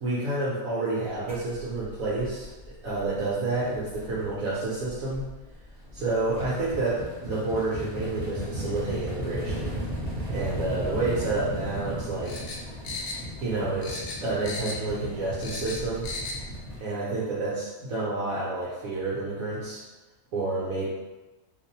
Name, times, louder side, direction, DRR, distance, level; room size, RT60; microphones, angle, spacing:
voice 1, 0.0-5.3 5.9-9.8 10.3-12.4 13.4-16.1 16.8-19.8 20.3-20.9, right 2 dB, 70° right, -8 dB, 1.1 m, -29 dB
sound 1, 1.3-3.2 3.5-16.8, equal, 35° right, 1.7 m, -36 dB
sound 2, 12.2-13.5 13.8-14.9 15.2-16.4 16.7-16.8, left 3 dB, 70° left, 0.5 m, -36 dB
3.3 x 2.5 x 2.6 m, 1.1 s
omnidirectional pair, 1.5 m